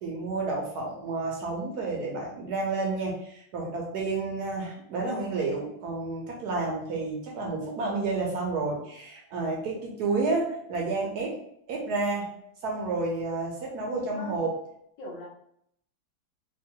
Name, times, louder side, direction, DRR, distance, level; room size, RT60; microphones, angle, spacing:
voice 1, 0.0-11.4 11.7-12.3 12.6-14.5, right 3 dB, 65° right, -1 dB, 1.1 m, -30 dB
voice 2, 13.9-14.4 15.0-15.3, left 2 dB, 80° left, -2 dB, 1.6 m, -41 dB
3.5 x 2.4 x 2.7 m, 0.71 s
omnidirectional pair, 2.0 m